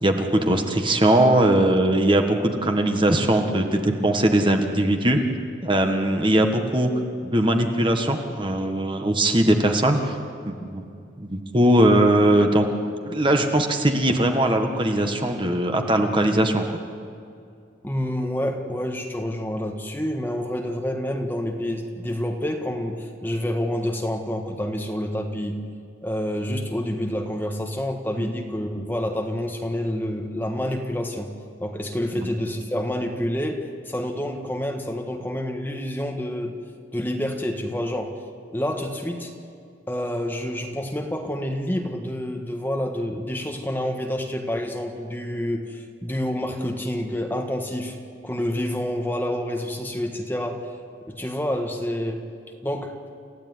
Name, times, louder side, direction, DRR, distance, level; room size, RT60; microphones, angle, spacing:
voice 1, 0.0-5.2 5.6-6.9 7.2-10.1 10.4-10.8 11.2-12.6 13.0-16.8 28.2-28.3 32.1-32.3, right 1 dB, 25° right, 4 dB, 1.5 m, -20 dB
voice 2, 17.8-25.6 26.0-31.3 31.6-36.6 36.9-38.1 38.5-39.3 39.9-48.0 48.2-50.6 51.1-52.2 52.6-52.9, left 1 dB, 10° left, 3 dB, 1.6 m, -28 dB
28.5 x 15.0 x 9.6 m, 2.4 s
head